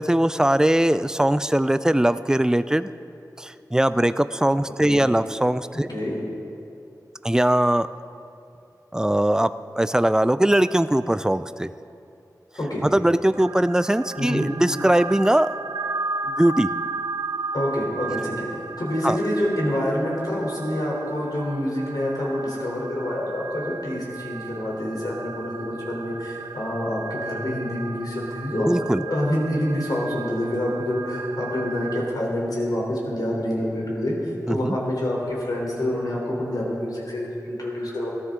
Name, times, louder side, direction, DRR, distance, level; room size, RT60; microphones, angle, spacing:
voice 1, 0.0-2.9 3.4-5.9 7.2-7.9 8.9-9.5 9.7-11.7 12.8-15.5 16.4-16.7 19.0-19.2 28.6-29.0 34.5-34.8, right 1 dB, 10° right, 13 dB, 0.4 m, -20 dB
voice 2, 5.7-6.2 12.6-12.8 14.2-14.5 17.5-28.7 29.1-38.1, left 1 dB, 70° left, -3 dB, 3.6 m, -27 dB
sound 1, 13.3-32.0, right 4 dB, 75° right, 1.2 m, -35 dB
18.0 x 13.0 x 3.8 m, 2.7 s
wide cardioid pair, 60°, 7 cm